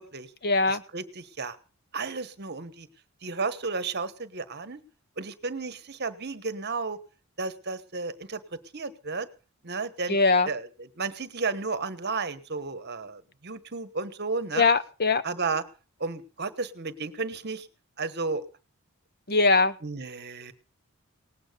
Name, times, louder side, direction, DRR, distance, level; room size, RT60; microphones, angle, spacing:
voice 1, 0.4-0.8 10.1-10.5 14.5-15.2 19.3-19.7, left 3 dB, 45° left, 14 dB, 0.9 m, -21 dB
voice 2, 0.9-1.6 1.9-2.9 3.2-4.8 5.2-7.0 7.4-8.4 8.7-9.3 9.6-10.2 10.5-10.6 11.0-14.7 15.2-15.6 16.0-17.7 18.0-18.4 19.8-20.5, right 4 dB, 45° right, 13 dB, 1.2 m, -33 dB
18.5 x 8.8 x 6.7 m, 0.36 s
head